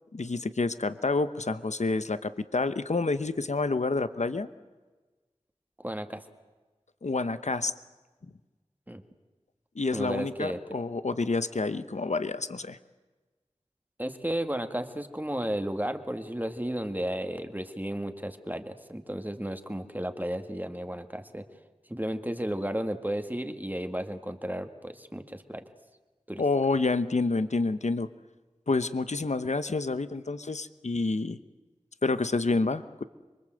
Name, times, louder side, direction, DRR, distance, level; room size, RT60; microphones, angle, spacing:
voice 1, 0.1-4.5 7.0-7.7 9.8-12.8 26.4-28.1 28.7-31.4 32.0-33.0, left 3 dB, 90° left, 12 dB, 0.9 m, -28 dB
voice 2, 5.8-6.2 8.9-9.0 9.9-10.6 14.0-21.4 21.9-25.6 26.3-26.4, right 1 dB, 15° right, 6 dB, 2.0 m, -33 dB
26.5 x 23.5 x 7.8 m, 1.3 s
wide cardioid pair, 45°, 12 cm